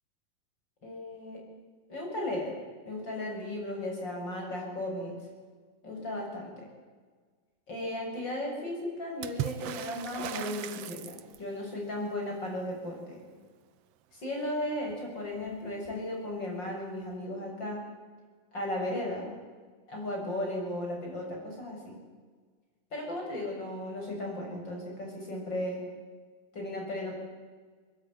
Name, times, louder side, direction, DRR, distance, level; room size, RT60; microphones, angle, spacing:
voice 1, 0.8-1.4 1.9-2.6 2.8-5.1 5.8-6.6 7.7-13.2 14.1-17.8 18.5-19.3 19.9-22.0 22.9-25.8 26.5-27.1, left 1 dB, 30° left, 0 dB, 7.7 m, -35 dB
Water / Splash splatter, 9.2-11.6 14.9-15.0 15.2-16.0 17.1-17.2, right 13 dB, 75° right, 1.4 m, -38 dB
23.0 x 22.0 x 9.6 m, 1.5 s
omnidirectional pair, 4.0 m